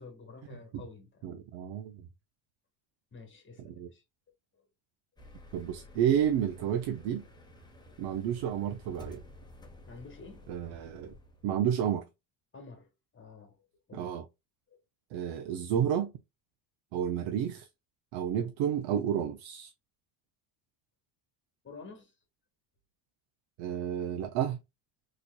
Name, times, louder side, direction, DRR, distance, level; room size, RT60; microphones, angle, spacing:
voice 1, 0.0-1.3 3.1-4.0 4.5-4.7 9.9-10.5 12.5-12.9 13.1-14.1 14.7-14.8 21.6-22.1, left 4 dB, 25° left, 1.5 m, -50 dB
voice 2, 1.2-2.1 3.8-3.9 5.5-7.3 8.0-9.2 10.5-11.1 11.4-12.0 13.9-14.2 15.1-16.1 16.9-17.7 18.1-19.7 23.6-24.6, right 9 dB, 70° right, 0.6 m, -31 dB
sound 1, 5.2-11.6, left 1 dB, 10° left, 1.0 m, -52 dB
4.0 x 3.1 x 2.2 m
cardioid pair, 105°, 49 cm